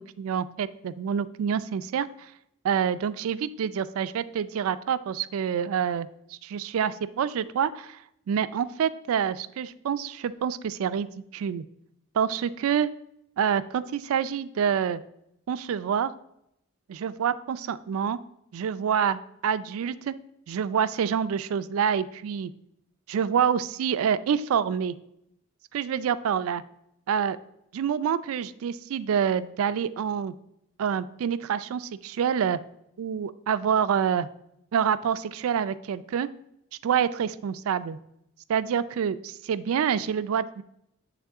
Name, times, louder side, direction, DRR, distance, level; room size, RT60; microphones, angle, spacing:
voice 1, 0.0-2.3 2.6-6.1 6.4-8.0 8.3-11.6 12.1-12.9 13.4-15.0 15.5-16.1 16.9-18.2 18.5-20.1 20.5-22.5 23.1-24.9 25.7-26.6 27.1-27.4 27.7-30.3 30.8-32.6 33.0-34.3 34.7-36.3 36.8-38.0 38.5-40.6, right 7 dB, 80° right, 14 dB, 0.3 m, -27 dB
7.5 x 3.5 x 3.5 m, 0.77 s
head